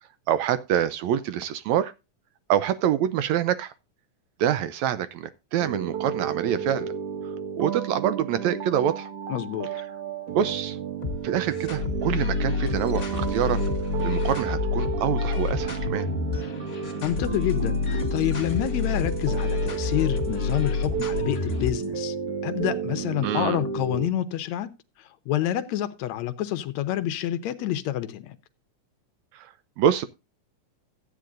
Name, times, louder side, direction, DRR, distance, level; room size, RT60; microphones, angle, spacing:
voice 1, 0.3-1.9 2.5-3.7 4.4-6.9 7.2-9.1 10.3-10.8 11.2-13.6 14.0-16.1 23.2-23.6 29.3-30.1, right 10 dB, 80° right, 1.7 m, -26 dB
sound 1, 5.6-24.1, right 7 dB, 50° right, 2.0 m, -32 dB
voice 2, 9.3-9.7 17.0-22.2 22.4-24.7 25.0-28.4, left 12 dB, 70° left, 1.9 m, -28 dB
sound 2, 11.0-21.9, left 6 dB, 25° left, 1.9 m, -29 dB
15.0 x 9.7 x 2.5 m
omnidirectional pair, 3.7 m